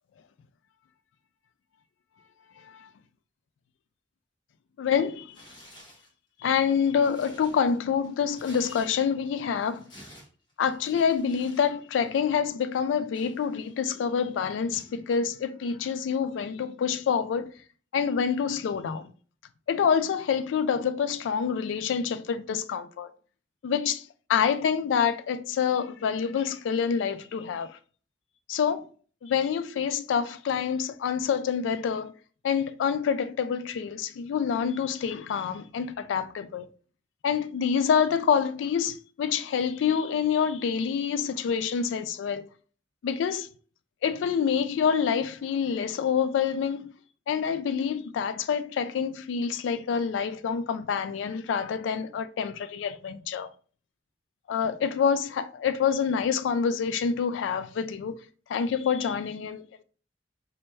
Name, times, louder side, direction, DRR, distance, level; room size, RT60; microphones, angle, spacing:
voice 1, 4.8-5.4 6.4-9.8 10.6-17.5 17.9-19.1 19.7-23.1 23.6-24.0 24.3-27.8 28.5-28.9 29.2-32.1 32.4-36.7 37.2-42.5 43.0-43.5 44.0-46.9 47.3-53.5 54.5-58.2 58.5-59.6, left 7 dB, 85° left, 0.3 m, -27 dB
Tearing, 5.3-6.1 6.6-9.3 9.6-11.7 12.0-12.2 12.7-13.9 14.7-15.0, equal, 25° left, 1.0 m, -52 dB
4.1 x 2.2 x 3.1 m
head